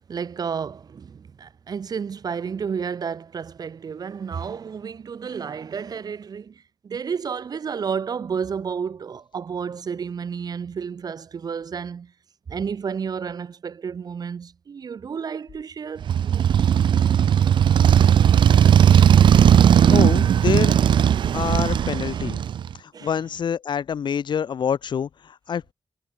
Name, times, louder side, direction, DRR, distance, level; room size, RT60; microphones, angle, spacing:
voice 1, 0.1-12.1 12.5-16.5 22.1-22.3 22.9-23.1, right 6 dB, 55° right, 0.9 m, -31 dB
Motorcycle, 16.0-22.7, right 9 dB, 85° right, 0.3 m, -16 dB
voice 2, 19.9-20.7 21.3-22.4 23.0-25.7, left 7 dB, 75° left, 0.9 m, -26 dB
wide cardioid pair, 175°, 8 cm